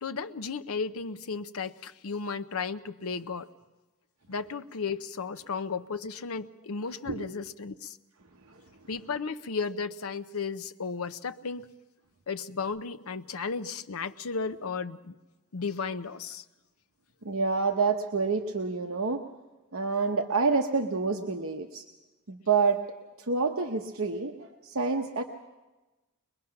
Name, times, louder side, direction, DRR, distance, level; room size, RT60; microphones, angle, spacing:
voice 1, 0.0-3.5 4.3-8.0 8.9-11.7 12.3-15.2 15.5-16.4, left 5 dB, 75° left, 0.7 m, -34 dB
voice 2, 17.2-19.2 19.7-21.8 22.3-22.8 23.2-25.2, right 4 dB, 65° right, 0.9 m, -28 dB
22.0 x 21.5 x 5.8 m
head